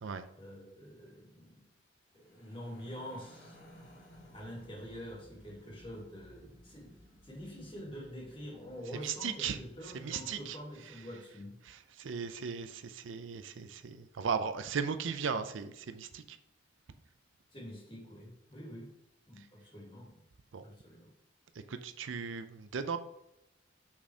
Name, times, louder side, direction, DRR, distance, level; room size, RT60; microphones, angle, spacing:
voice 1, 0.4-1.7 2.1-3.6 4.3-6.9 7.2-11.5 17.5-18.9 19.3-20.2 20.6-21.1, equal, 25° left, -3 dB, 2.1 m, -46 dB
sound 1, 2.1-11.4, equal, 75° left, 2.1 m, -59 dB
voice 2, 9.0-9.6 9.9-10.6 11.7-16.4 20.5-20.6 21.7-23.0, right 6 dB, 80° right, 10 dB, 0.5 m, -37 dB
6.0 x 4.2 x 4.8 m, 0.84 s
head